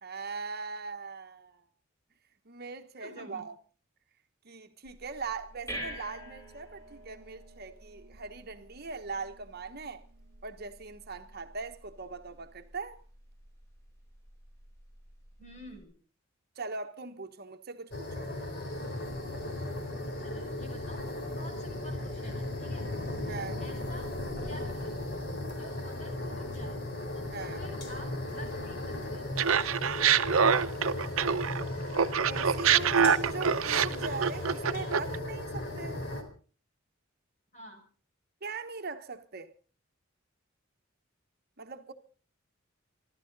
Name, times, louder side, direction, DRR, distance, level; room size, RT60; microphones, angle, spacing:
voice 1, 0.0-1.7 2.4-3.5 4.4-10.0 10.4-13.0 16.6-18.3 23.3-23.6 27.3-27.6 32.2-36.0 38.4-39.5 41.6-41.9, right 4 dB, 50° right, 1.2 m, -40 dB
voice 2, 3.0-3.4 15.4-15.9 19.9-22.9 23.2-24.1 24.4-24.9 25.3-26.8 27.1-29.3 37.5-37.8, left 1 dB, 35° left, 6.3 m, -50 dB
sound 1, 4.8-15.8, equal, 15° left, 6.3 m, -48 dB
sound 2, 17.9-36.2, left 1 dB, 55° left, 3.7 m, -36 dB
Laughter, 29.4-31.6 31.9-35.2, right 7 dB, 90° right, 0.8 m, -25 dB
27.0 x 12.5 x 4.0 m
head